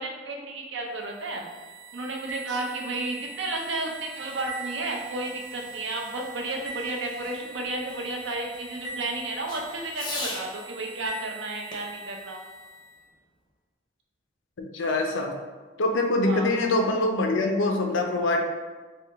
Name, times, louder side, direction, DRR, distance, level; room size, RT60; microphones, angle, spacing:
voice 1, 0.0-1.4 1.9-12.4 16.2-16.6, right 2 dB, 75° right, 1 dB, 0.6 m, -32 dB
sound 1, 0.9-13.0, right 4 dB, 45° right, 0.9 m, -42 dB
Fireworks, 3.3-10.5 11.7-13.3, left 2 dB, 20° left, 0.5 m, -43 dB
voice 2, 14.6-15.3 15.8-18.4, left 2 dB, 85° left, 3 dB, 0.5 m, -24 dB
3.4 x 2.8 x 3.5 m, 1.3 s
head